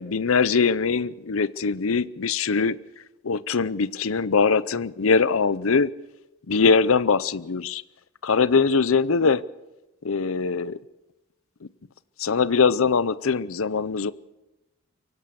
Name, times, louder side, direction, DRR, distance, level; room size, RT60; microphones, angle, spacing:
voice 1, 0.0-2.8 3.2-5.9 6.5-7.8 8.2-9.4 10.0-10.8 12.2-14.1, left 5 dB, 70° left, 17 dB, 0.6 m, -22 dB
24.0 x 17.0 x 6.9 m, 1.0 s
head